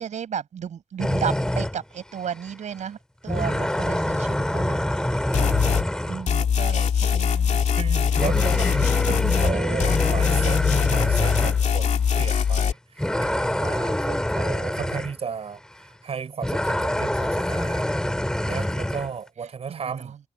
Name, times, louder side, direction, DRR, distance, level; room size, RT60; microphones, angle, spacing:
voice 1, 0.0-3.0 3.2-5.9 6.6-8.0 9.1-9.8 18.2-18.3 19.7-20.2, right 8 dB, 85° right, 6.4 m, -34 dB
sound 1, 1.0-1.8 2.5-2.6 3.3-6.2 8.2-11.6 12.3-12.5 13.0-15.1 16.4-19.1, left 1 dB, 5° left, 3.0 m, -25 dB
sound 2, 5.3-5.9 6.3-9.5 9.8-12.7, left 7 dB, 75° left, 2.5 m, -22 dB
voice 2, 6.1-6.6 7.8-15.6 16.0-17.9 18.5-20.2, right 6 dB, 55° right, 6.5 m, -34 dB
wide cardioid pair, 150°, 12 cm